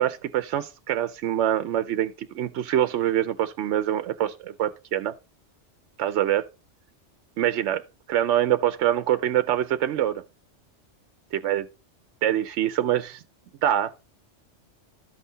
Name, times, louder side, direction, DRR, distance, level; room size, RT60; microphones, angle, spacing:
voice 1, 0.0-5.1 6.0-6.5 7.4-7.8 8.1-10.2 11.3-11.7 12.2-13.2 13.6-13.9, right 11 dB, 75° right, 0.9 m, -24 dB
13.0 x 5.5 x 2.7 m
omnidirectional pair, 1.2 m